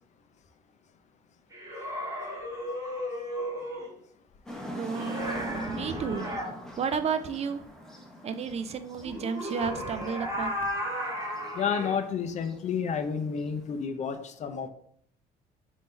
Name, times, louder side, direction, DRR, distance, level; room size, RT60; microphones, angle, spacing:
sound 1, 1.5-3.9 4.9-6.5 9.0-12.0, equal, 15° right, 1.6 m, -35 dB
sound 2, 4.5-13.8, equal, 5° left, 0.8 m, -43 dB
voice 1, 4.8-6.3 6.8-7.6 8.2-10.6, right 6 dB, 40° right, 10 dB, 0.4 m, -32 dB
voice 2, 11.5-14.7, left 6 dB, 45° left, 9 dB, 0.5 m, -30 dB
3.6 x 2.7 x 4.3 m, 0.64 s
cardioid pair, 110°, 17 cm